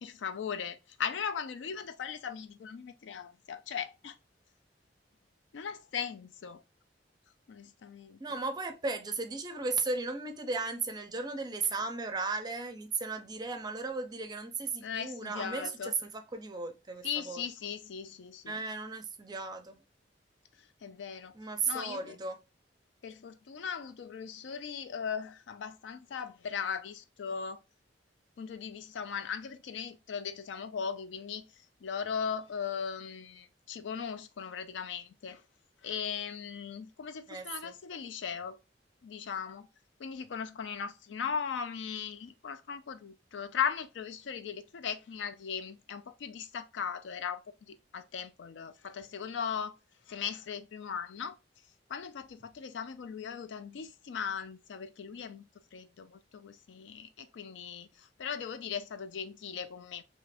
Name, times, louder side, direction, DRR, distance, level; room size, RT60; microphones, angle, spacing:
voice 1, 0.0-4.2 5.5-6.6 7.5-8.2 14.8-16.0 17.0-18.6 20.6-21.4 21.7-22.2 23.0-27.6 28.4-35.4 35.8-38.6 39.0-39.7 40.0-49.7 50.1-51.4 51.9-60.0, left 7 dB, 75° left, 0.4 m, -38 dB
voice 2, 8.2-17.4 18.5-19.8 21.3-22.4 37.3-37.7, right 3 dB, 20° right, 0.5 m, -35 dB
2.7 x 2.5 x 3.2 m
head